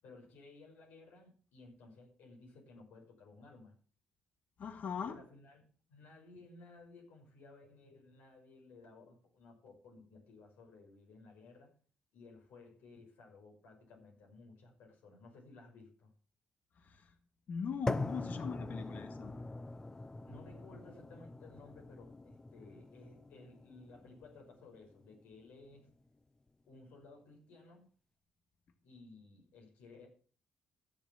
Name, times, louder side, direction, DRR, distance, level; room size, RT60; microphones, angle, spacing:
voice 1, 0.0-3.8 5.0-5.6 5.9-11.7 12.1-16.1 20.2-25.9 26.7-27.9 28.8-30.1, left 3 dB, 80° left, 1 dB, 5.7 m, -57 dB
voice 2, 4.6-5.2 16.8-17.1 17.5-19.4, left 6 dB, 55° left, 8 dB, 1.9 m, -40 dB
sound 1, 17.9-25.9, left 2 dB, 20° left, 0.7 m, -43 dB
13.5 x 7.2 x 7.2 m, 0.42 s
cardioid pair, 95°, 3 cm